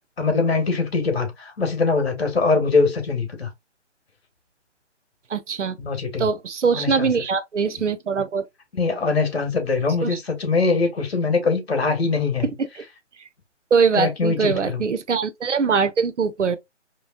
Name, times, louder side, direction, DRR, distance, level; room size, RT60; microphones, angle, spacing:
voice 1, 0.2-3.5 5.8-6.3 6.7-7.1 8.7-12.5 14.0-14.8, left 4 dB, 60° left, 1.7 m, -22 dB
voice 2, 5.3-5.8 6.2-8.4 10.0-10.2 12.4-12.8 13.7-16.6, right 5 dB, 75° right, 0.8 m, -22 dB
4.3 x 3.0 x 2.5 m
figure-of-eight pair, 145°, 36 cm